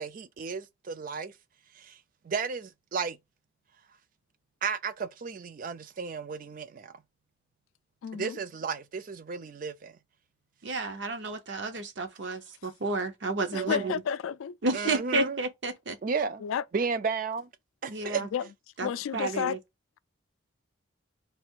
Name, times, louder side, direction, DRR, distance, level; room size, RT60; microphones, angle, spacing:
voice 1, 0.0-1.3 1.8-2.0 2.2-3.2 4.6-6.9 8.1-10.0 13.5-13.9 14.7-15.4 16.0-16.4 16.7-17.5 17.8-18.2, right 5 dB, 40° right, 0.3 m, -33 dB
voice 2, 8.0-8.4 13.5-14.5 16.4-16.6 18.3-18.4 18.8-19.6, left 8 dB, 85° left, 0.3 m, -31 dB
voice 3, 10.6-13.9 14.6-16.0 17.9-18.3 18.8-19.6, right 3 dB, 60° right, 0.7 m, -31 dB
3.3 x 2.4 x 4.4 m
head